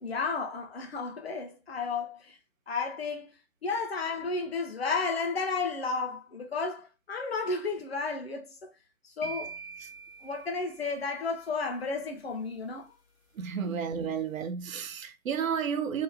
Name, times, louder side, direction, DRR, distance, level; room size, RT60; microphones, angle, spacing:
voice 1, 0.0-2.4 2.7-3.3 3.6-8.7 9.0-9.5 10.2-12.9 13.7-13.8, left 4 dB, 45° left, 0.8 m, -33 dB
sound 1, 9.2-11.3, right 4 dB, 75° left, 1.3 m, -44 dB
voice 2, 13.4-16.0, right 7 dB, 70° right, 0.5 m, -32 dB
2.9 x 2.1 x 2.6 m
figure-of-eight pair, 140°, 42 cm